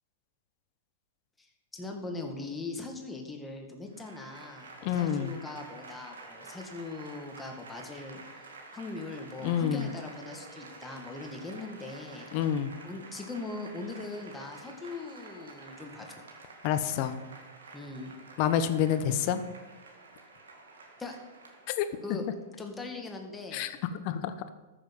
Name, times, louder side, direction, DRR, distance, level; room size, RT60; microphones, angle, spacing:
voice 1, 1.4-8.2 8.7-12.5 12.8-16.1 17.7-18.2 21.0-21.2 22.0-22.2 22.6-23.7, left 3 dB, 10° left, 2 dB, 2.0 m, -40 dB
Applause / Crowd, 3.9-22.4, right 3 dB, 85° right, 2.0 m, -50 dB
voice 2, 4.8-5.3 9.4-9.9 12.3-12.7 16.6-17.2 18.4-19.4 21.8-22.2 23.5-23.7 24.0-24.3, left 9 dB, 50° left, 11 dB, 1.0 m, -28 dB
14.0 x 7.1 x 5.5 m, 1.2 s
hypercardioid pair, 115°, 0 cm